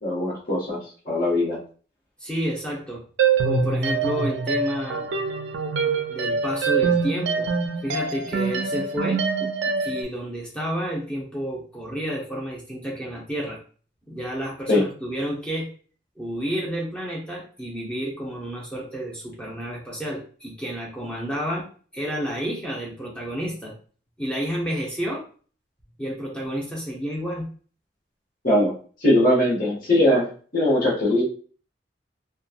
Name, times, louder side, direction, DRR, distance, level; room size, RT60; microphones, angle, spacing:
voice 1, 0.0-0.8 1.0-1.6 14.7-14.8 28.4-28.7 29.0-31.2, left 1 dB, 45° left, -4 dB, 1.1 m, -20 dB
voice 2, 2.2-3.0 3.4-5.1 6.1-7.5 7.8-9.2 9.8-13.6 14.1-15.7 16.2-21.7 21.9-23.8 24.2-25.2 26.0-27.5, equal, 5° left, -3 dB, 0.7 m, -30 dB
sound 1, 3.2-10.0, right 5 dB, 75° right, 0.4 m, -24 dB
2.9 x 2.3 x 2.4 m, 0.41 s
head